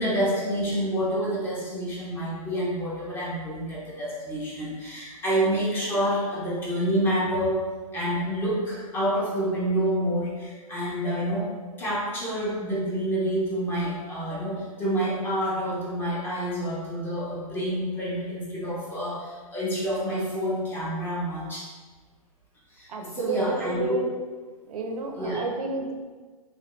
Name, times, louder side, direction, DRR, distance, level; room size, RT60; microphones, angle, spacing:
voice 1, 0.0-11.5 11.8-21.7 22.7-24.0 25.2-25.4, equal, 10° left, -6 dB, 0.6 m, -28 dB
voice 2, 22.9-24.0 24.7-25.9, right 3 dB, 75° right, 3 dB, 0.6 m, -31 dB
3.4 x 2.3 x 3.0 m, 1.4 s
hypercardioid pair, 150°, 19 cm